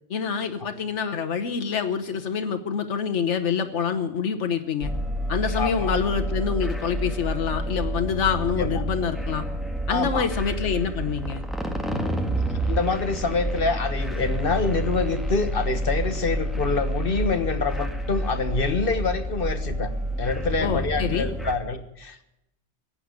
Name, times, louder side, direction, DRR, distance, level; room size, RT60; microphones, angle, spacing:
voice 1, 0.1-4.9 5.3-9.4 9.9-11.4 20.6-21.3, left 6 dB, 90° left, 7 dB, 1.3 m, -26 dB
sound 1, 4.8-21.5, right 1 dB, ahead, 1.7 m, -29 dB
voice 2, 5.6-5.9 8.6-8.8 9.9-10.3 12.6-19.9 20.2-22.3, left 4 dB, 55° left, 10 dB, 1.5 m, -26 dB
15.5 x 8.7 x 9.6 m, 0.84 s
omnidirectional pair, 1.2 m